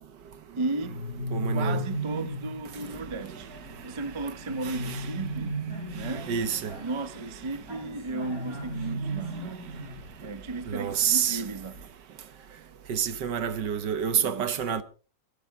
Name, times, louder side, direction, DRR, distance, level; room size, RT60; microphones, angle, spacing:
voice 1, 0.6-1.0 1.5-3.5 3.8-5.6 5.9-6.3 6.8-9.6 10.2-11.8 14.2-14.6, right 3 dB, 30° right, 0.5 m, -35 dB
sound 1, 0.8-2.6 4.5-6.3 8.2-10.1, right 1 dB, 55° left, 2.8 m, -34 dB
voice 2, 1.3-1.8 4.6-5.0 6.0-6.7 10.7-11.4 12.9-14.8, right 8 dB, 75° right, 1.8 m, -28 dB
Vehicle, 2.7-11.9, right 2 dB, 50° right, 6.6 m, -46 dB
23.0 x 12.0 x 3.6 m
omnidirectional pair, 1.9 m